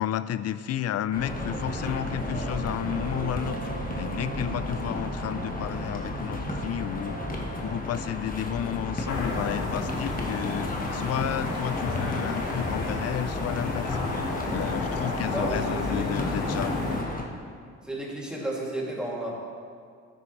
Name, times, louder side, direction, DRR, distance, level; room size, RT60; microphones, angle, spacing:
voice 1, 0.0-3.6 4.0-7.2 7.6-14.0 14.5-16.8, left 10 dB, 55° left, 14 dB, 0.5 m, -32 dB
sound 1, 1.1-17.2, left 2 dB, 30° left, 1.5 m, -34 dB
sound 2, 1.3-7.7, right 3 dB, 60° right, 2.4 m, -38 dB
sound 3, 9.1-17.0, left 3 dB, 85° left, 2.0 m, -31 dB
voice 2, 15.2-16.5 17.8-19.3, right 1 dB, 5° right, -5 dB, 2.7 m, -33 dB
13.0 x 10.0 x 3.3 m, 2.2 s
cardioid pair, 90°, 30 cm